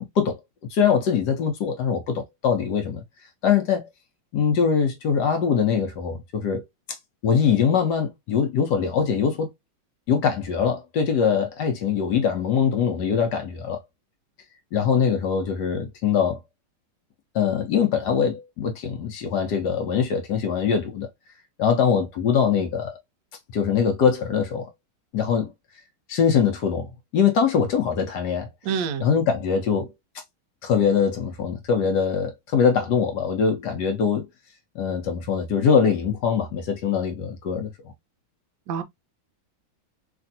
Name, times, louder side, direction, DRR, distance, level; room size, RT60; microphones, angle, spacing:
voice 1, 0.7-3.0 3.4-3.9 4.3-6.6 7.2-9.5 10.1-13.8 14.7-16.4 17.3-21.1 21.6-23.0 23.5-24.7 25.1-25.5 26.1-29.9 30.6-34.3 34.7-37.7, left 7 dB, 70° left, 1.1 m, -22 dB
voice 2, 28.7-29.0 38.7-38.8, right 6 dB, 75° right, 0.9 m, -26 dB
3.3 x 2.5 x 2.6 m
omnidirectional pair, 2.3 m